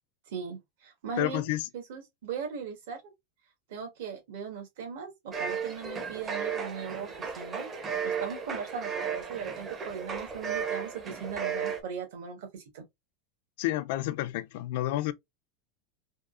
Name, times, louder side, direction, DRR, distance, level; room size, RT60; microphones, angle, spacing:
voice 1, 0.3-1.5 1.7-3.1 3.7-7.7 8.0-12.8, right 6 dB, 65° right, 1.3 m, -39 dB
voice 2, 1.2-1.6 13.6-15.1, left 15 dB, 55° left, 0.3 m, -30 dB
sound 1, 5.3-11.8, right 6 dB, 20° right, 0.5 m, -34 dB
3.5 x 2.4 x 2.4 m
supercardioid pair, 165°, 0 cm